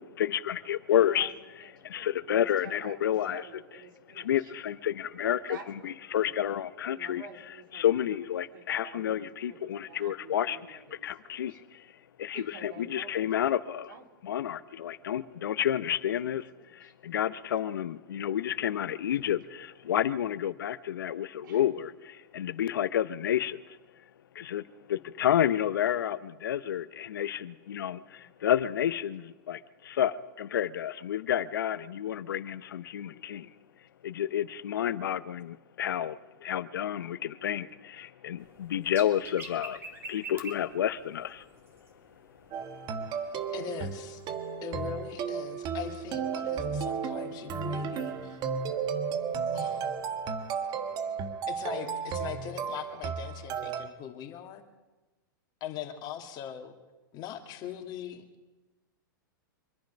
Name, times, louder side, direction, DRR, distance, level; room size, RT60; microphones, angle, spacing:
voice 1, 0.2-1.3 1.8-3.4 4.2-5.6 5.8-7.2 7.7-11.9 12.2-13.9 14.2-16.4 16.7-23.8 24.3-24.6 24.9-33.5 34.0-41.5, left 10 dB, 75° left, 14 dB, 0.7 m, -30 dB
voice 2, 1.6-4.5 5.3-6.3 6.9-11.6 12.3-13.2 13.7-14.0 14.3-14.4 16.1-16.9 19.8-19.9 21.4-21.7 28.0-28.3, right 6 dB, 70° right, 3 dB, 3.0 m, -50 dB
sound 1, 38.4-50.7, right 3 dB, 20° right, 2.5 m, -51 dB
sound 2, 42.5-53.9, right 6 dB, 40° right, 1.5 m, -34 dB
voice 3, 43.5-44.2 44.6-48.4 49.5-50.0 51.5-54.6 55.6-56.7 57.1-58.2, left 9 dB, 40° left, 3 dB, 2.4 m, -41 dB
25.5 x 10.5 x 5.3 m, 1.1 s
hypercardioid pair, 110°, 11 cm